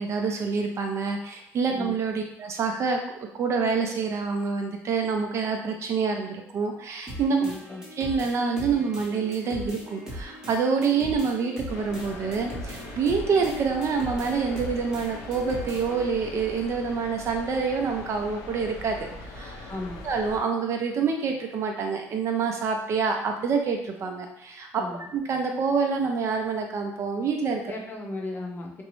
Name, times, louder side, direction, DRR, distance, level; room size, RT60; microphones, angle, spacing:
voice 1, 0.0-3.0 3.3-7.4 8.0-19.1 19.3-19.7 20.0-24.8 25.1-27.6, right 5 dB, 50° right, 3 dB, 0.5 m, -27 dB
sound 1, 7.1-16.1, equal, 10° right, 0.9 m, -40 dB
voice 2, 7.4-7.8 19.7-20.0 24.7-25.1 27.7-28.8, left 2 dB, 30° left, 0 dB, 0.6 m, -36 dB
sound 2, 11.7-20.4, left 2 dB, 75° left, 0.5 m, -41 dB
2.5 x 2.0 x 3.0 m, 0.74 s
supercardioid pair, 90°, 6 cm